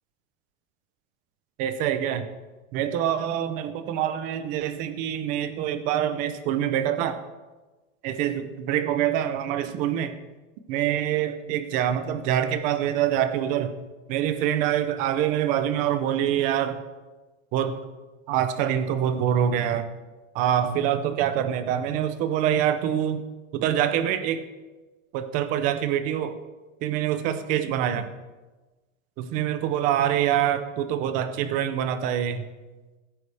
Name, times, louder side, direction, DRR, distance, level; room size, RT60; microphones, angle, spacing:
voice 1, 1.6-2.3 2.7-7.2 8.0-10.2 10.7-13.7 14.1-16.8 17.5-17.8 18.3-19.9 20.3-23.2 23.5-24.4 25.1-26.4 26.8-28.1 29.2-32.5, right 10 dB, 20° right, 10 dB, 0.4 m, -25 dB
17.0 x 9.9 x 3.3 m, 1.2 s
supercardioid pair, 165°, 40 cm